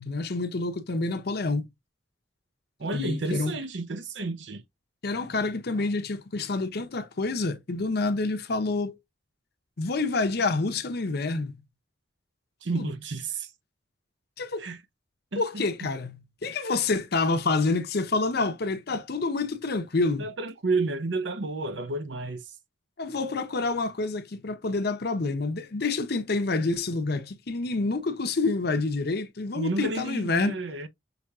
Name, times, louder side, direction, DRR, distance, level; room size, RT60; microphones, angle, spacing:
voice 1, 0.0-1.7 2.9-3.5 5.0-9.0 9.8-11.6 12.7-12.9 14.4-14.7 15.4-20.3 23.0-30.6, left 3 dB, 60° left, 0.7 m, -28 dB
voice 2, 2.8-4.6 12.6-13.5 14.6-14.8 15.3-15.6 16.5-16.6 20.2-22.6 29.5-30.9, right 3 dB, 70° right, 0.7 m, -31 dB
6.0 x 3.4 x 2.3 m
head